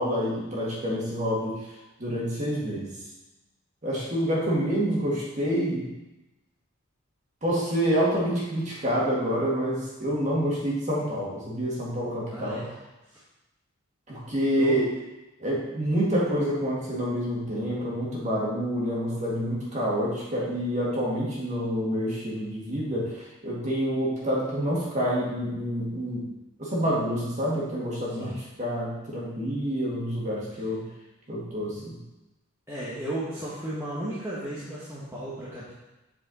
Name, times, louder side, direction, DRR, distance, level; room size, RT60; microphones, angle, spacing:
voice 1, 0.0-1.6 2.0-3.0 3.8-5.9 7.4-12.8 14.1-14.9 15.4-26.3 26.6-30.9 31.3-32.0, equal, 35° right, -5 dB, 1.9 m, -27 dB
voice 2, 12.3-12.7 13.1-13.2 14.6-14.8 28.2-28.3 32.7-35.7, right 1 dB, 10° right, -9 dB, 1.1 m, -34 dB
7.8 x 4.9 x 4.1 m, 1.0 s
head